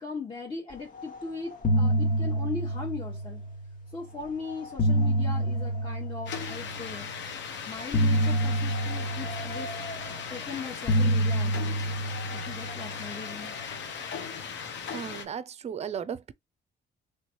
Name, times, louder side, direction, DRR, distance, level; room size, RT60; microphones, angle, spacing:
voice 1, 0.0-3.4 3.9-7.1 7.6-9.7 10.3-11.8 12.3-13.5, left 4 dB, 25° left, 1.0 m, -39 dB
sound 1, 1.0-1.2 1.5-3.8 4.5-6.9 7.9-10.4 10.9-13.4, equal, 45° left, 1.3 m, -27 dB
sound 2, 6.3-15.2, left 6 dB, 65° left, 0.8 m, -38 dB
voice 2, 14.9-16.3, right 8 dB, 35° right, 0.4 m, -35 dB
3.2 x 3.0 x 2.9 m
cardioid pair, 90°, 20 cm